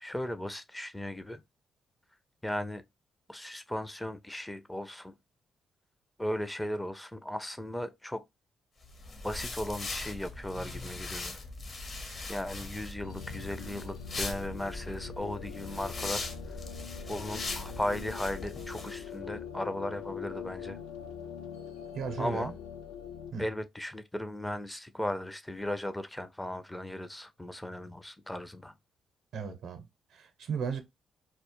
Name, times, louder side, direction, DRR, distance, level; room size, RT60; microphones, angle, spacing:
voice 1, 0.0-1.4 2.4-2.8 3.3-5.1 6.2-8.2 9.2-11.4 11.7-11.9 12.3-16.6 17.1-20.8 22.2-22.5 23.4-28.7, left 1 dB, 10° left, 0.4 m, -36 dB
sound 1, 8.8-19.0, left 2 dB, 45° left, 0.7 m, -40 dB
sound 2, 13.0-23.3, left 8 dB, 90° left, 0.3 m, -43 dB
voice 2, 21.9-22.6 23.3-23.5 29.3-29.8 30.1-30.8, right 6 dB, 70° right, 0.6 m, -35 dB
2.1 x 2.0 x 2.9 m
supercardioid pair, 60°, 0 cm